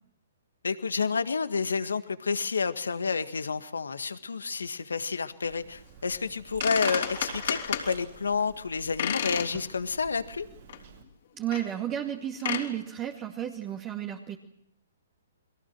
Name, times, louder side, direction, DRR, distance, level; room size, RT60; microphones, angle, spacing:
voice 1, 0.6-10.5, left 5 dB, 80° left, 10 dB, 1.8 m, -30 dB
Liquid, 5.4-11.0, right 7 dB, 60° right, 6.3 m, -46 dB
sound 1, 6.3-6.4 6.6-7.9 9.0-9.5 9.9-10.0 10.7-10.8 11.5-11.7 12.3-12.7, left 9 dB, 60° left, 3.8 m, -31 dB
voice 2, 11.3-14.4, right 11 dB, 25° right, 3 dB, 2.2 m, -32 dB
29.5 x 22.5 x 6.2 m, 0.73 s
figure-of-eight pair, 125°, 0 cm